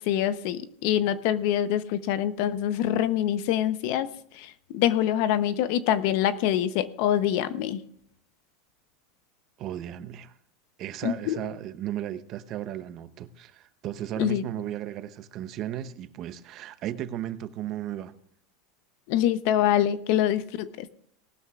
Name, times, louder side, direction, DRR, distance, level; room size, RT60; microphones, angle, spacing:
voice 1, 0.1-4.1 4.4-7.8 11.0-11.4 14.2-14.4 19.1-20.9, left 11 dB, 60° left, 0.7 m, -25 dB
voice 2, 9.6-10.3 10.8-18.1, right 11 dB, 40° right, 0.7 m, -35 dB
19.0 x 12.5 x 2.4 m
supercardioid pair, 150°, 0 cm